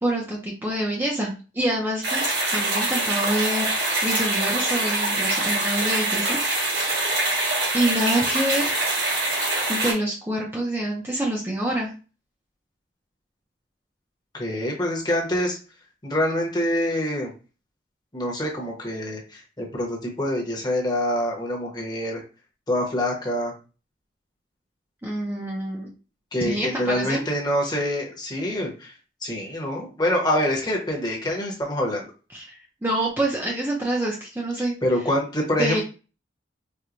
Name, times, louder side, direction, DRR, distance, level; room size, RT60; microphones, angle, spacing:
voice 1, 0.0-2.2 2.5-3.7 4.0-6.4 6.7-7.1 7.7-8.7 9.7-11.9 25.0-25.9 26.4-27.2 32.3-34.8 35.6-35.8, right 1 dB, 10° right, -3 dB, 0.5 m, -26 dB
sound 1, 2.0-9.9, right 2 dB, 60° right, 1.4 m, -24 dB
voice 2, 14.3-15.6 16.0-17.3 18.1-22.2 22.7-23.5 26.3-28.9 29.2-32.1 34.8-35.8, left 1 dB, 20° left, -1 dB, 0.9 m, -25 dB
4.4 x 2.2 x 2.5 m, 0.34 s
head